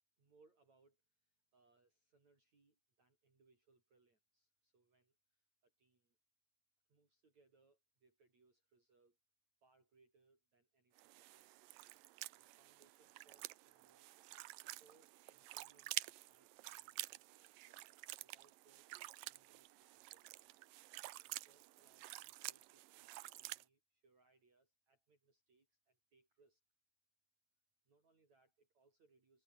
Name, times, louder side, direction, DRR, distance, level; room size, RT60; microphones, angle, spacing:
voice 1, 0.2-6.2 6.9-9.2 9.6-11.6 12.3-14.1 14.6-17.9 18.2-19.0 19.3-20.6 21.2-26.6 27.9-29.4, right 3 dB, 40° right, 7.8 m, -75 dB
sound 1, 11.0-23.6, right 18 dB, 80° right, 2.0 m, -50 dB
omnidirectional pair, 4.8 m